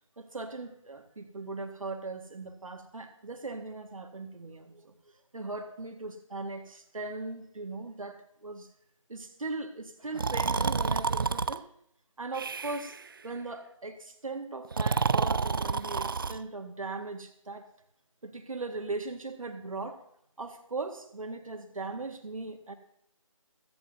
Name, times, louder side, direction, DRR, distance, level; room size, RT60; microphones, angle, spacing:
voice 1, 0.2-8.7 9.1-11.6 12.2-13.0 13.2-17.7 18.2-20.0 20.4-22.7, right 3 dB, 75° right, 6 dB, 1.8 m, -39 dB
Breathing, 10.1-11.6 12.3-13.0 14.6-16.4, right 5 dB, 40° right, 0.4 m, -29 dB
15.5 x 14.0 x 2.7 m, 0.71 s
figure-of-eight pair, 165°, 17 cm